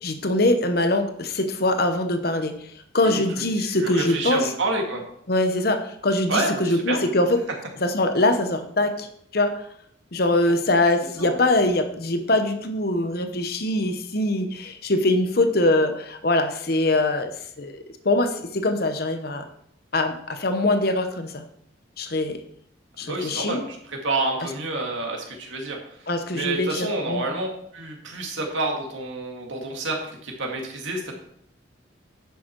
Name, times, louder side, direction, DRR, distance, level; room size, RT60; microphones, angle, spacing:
voice 1, 0.0-2.5 2.9-4.5 5.3-7.4 7.8-9.1 9.3-9.5 10.1-17.3 17.6-19.4 19.9-21.4 22.0-22.4 23.0-23.6 26.1-27.2, left 2 dB, 50° left, 7 dB, 0.9 m, -23 dB
voice 2, 3.0-5.0 6.3-7.0 11.2-11.4 23.0-31.1, right 2 dB, 75° right, 1 dB, 2.1 m, -29 dB
10.5 x 7.1 x 4.6 m, 0.68 s
head